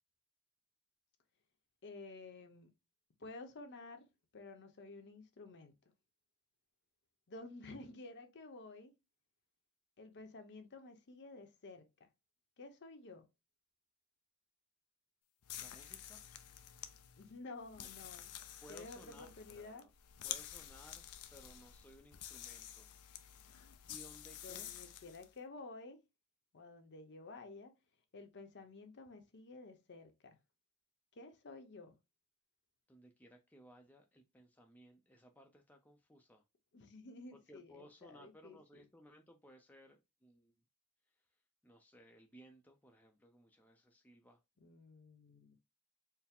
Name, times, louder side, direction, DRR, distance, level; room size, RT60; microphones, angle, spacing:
voice 1, 1.8-2.7 3.2-4.1 4.3-5.7 7.3-8.9 10.0-12.1 12.6-13.2 17.2-18.3 18.7-19.9 24.4-26.0 26.5-27.7 28.1-30.4 31.2-31.9 36.7-38.8 44.6-45.6, left 3 dB, 55° left, 0.7 m, -52 dB
sound 1, 15.4-25.3, left 11 dB, 85° left, 0.5 m, -50 dB
voice 2, 15.6-16.2 18.6-19.9 20.2-22.9 23.9-24.7 32.9-36.4 37.3-40.5 41.6-44.4, equal, 5° left, 0.4 m, -60 dB
4.5 x 2.0 x 3.6 m
head